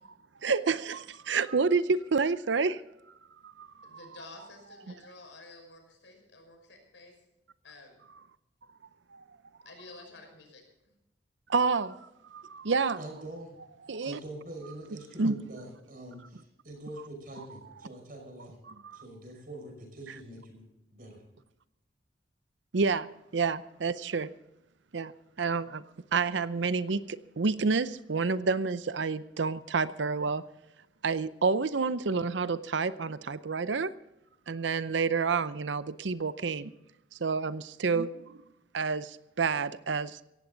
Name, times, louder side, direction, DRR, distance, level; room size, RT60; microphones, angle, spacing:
voice 1, 0.4-2.8 3.4-4.0 4.9-5.0 9.1-9.2 11.5-13.0 13.9-14.2 15.2-15.4 18.8-19.0 22.7-24.3 24.9-25.1 25.4-25.8 26.1-30.4 31.0-33.9 34.5-36.7 37.2-38.4 38.7-40.2, right 4 dB, 80° right, 15 dB, 0.7 m, -29 dB
voice 2, 3.8-7.1 7.6-7.9 9.7-10.6, left 2 dB, 80° left, 3 dB, 5.6 m, -51 dB
voice 3, 13.0-13.6 14.0-18.6 18.9-20.6 20.9-21.2, right 1 dB, 50° right, 3 dB, 5.6 m, -44 dB
17.5 x 15.5 x 4.0 m, 0.86 s
head